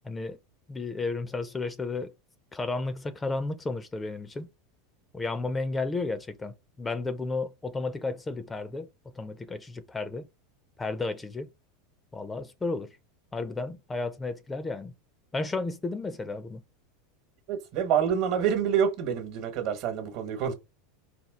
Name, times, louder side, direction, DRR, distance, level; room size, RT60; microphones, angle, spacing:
voice 1, 0.0-0.4 0.7-2.1 2.5-4.5 5.1-8.9 9.1-10.3 10.8-11.5 12.1-13.0 13.3-14.9 15.3-16.6, left 3 dB, 15° left, 0.4 m, -33 dB
voice 2, 17.5-20.5, right 8 dB, 55° right, 1.1 m, -27 dB
4.2 x 2.4 x 3.6 m
supercardioid pair, 120°, 0 cm